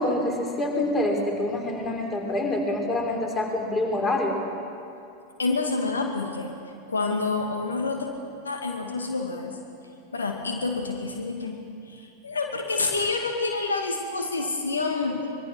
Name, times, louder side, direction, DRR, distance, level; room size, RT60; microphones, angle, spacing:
voice 1, 0.0-4.4, left 1 dB, 20° left, 2 dB, 4.9 m, -26 dB
voice 2, 5.4-6.5 6.9-8.1 8.4-9.6 10.1-11.6 11.9-15.3, left 3 dB, 75° left, 2 dB, 2.4 m, -28 dB
25.0 x 23.0 x 6.3 m, 2.6 s
figure-of-eight pair, 90°, 0 cm